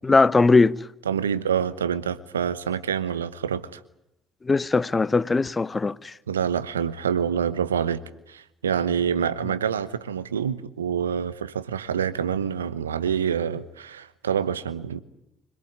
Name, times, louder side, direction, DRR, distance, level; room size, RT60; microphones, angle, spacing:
voice 1, 0.0-0.8 4.5-6.1, left 3 dB, 25° left, 0.9 m, -19 dB
voice 2, 1.0-3.8 6.3-8.0 8.3-15.0, right 8 dB, 85° right, 1.0 m, -26 dB
25.5 x 18.5 x 9.5 m
figure-of-eight pair, 50°, 0 cm